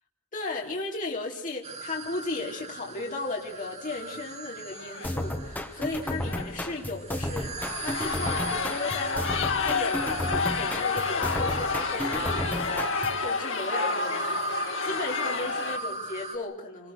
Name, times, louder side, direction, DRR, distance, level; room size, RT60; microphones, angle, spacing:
voice 1, 0.3-7.5 7.8-9.2 9.6-12.9 13.2-16.9, left 2 dB, 40° left, -1 dB, 4.0 m, -36 dB
sound 1, 1.6-16.4, right 2 dB, 30° right, 3.1 m, -38 dB
sound 2, 3.5-4.1 4.7-5.1 6.3-6.8 7.4-15.8, left 5 dB, 65° left, 2.4 m, -30 dB
sound 3, 5.0-13.3, left 1 dB, 10° left, 1.6 m, -33 dB
28.0 x 21.5 x 6.3 m, 0.66 s
head